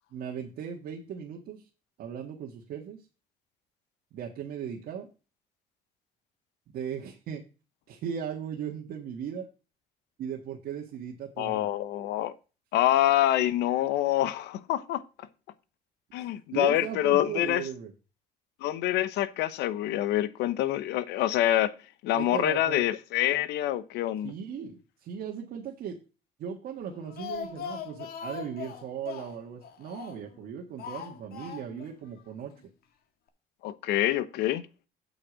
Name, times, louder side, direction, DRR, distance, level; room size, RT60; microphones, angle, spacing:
voice 1, 0.1-1.6 2.0-3.0 4.1-5.1 6.7-7.4 7.9-9.5 10.2-11.7 16.2-16.3 16.5-17.9 22.1-22.8 24.2-26.0 26.4-32.5, right 8 dB, 65° right, 1.7 m, -37 dB
voice 2, 11.4-12.3 12.7-15.0 16.1-17.6 18.6-21.7 22.0-24.3 33.6-34.6, left 13 dB, 85° left, 0.9 m, -26 dB
Speech, 26.8-30.4 30.8-31.9 32.2-32.3 32.6-32.7, left 6 dB, 65° left, 1.7 m, -40 dB
8.4 x 5.2 x 6.3 m
cardioid pair, 110°, 17 cm